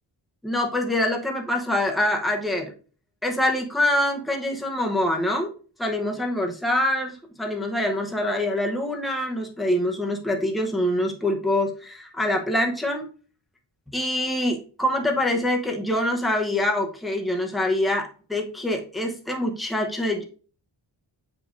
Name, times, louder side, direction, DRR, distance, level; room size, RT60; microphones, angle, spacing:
voice 1, 0.4-2.7 3.2-5.5 5.8-13.1 13.9-20.2, left 1 dB, ahead, 2 dB, 0.7 m, -25 dB
7.5 x 5.1 x 2.5 m, 0.39 s
wide cardioid pair, 165°, 47 cm